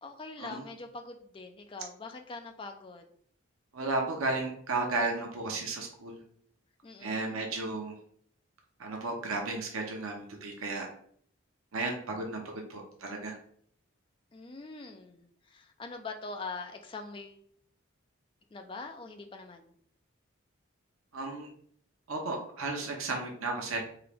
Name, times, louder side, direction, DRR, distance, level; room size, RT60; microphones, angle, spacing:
voice 1, 0.0-3.1 6.8-7.4 14.3-17.4 18.5-19.7, left 3 dB, 25° left, 4 dB, 0.4 m, -43 dB
voice 2, 3.7-6.2 7.0-7.9 8.8-10.9 11.7-13.4 21.1-21.5 22.1-23.8, right 3 dB, 85° right, 1 dB, 0.8 m, -34 dB
3.7 x 2.9 x 3.4 m, 0.62 s
head